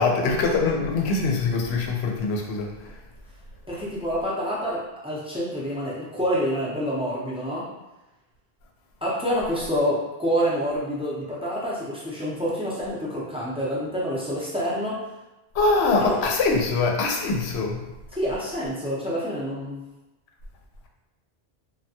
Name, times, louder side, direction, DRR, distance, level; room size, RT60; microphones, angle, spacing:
voice 1, 0.0-2.7 15.6-17.8, left 3 dB, 80° left, 1 dB, 0.8 m, -23 dB
voice 2, 3.7-7.7 9.0-15.0 16.0-16.2 18.1-19.8, equal, 5° right, -7 dB, 0.5 m, -27 dB
3.3 x 2.2 x 2.7 m, 1.0 s
omnidirectional pair, 1.1 m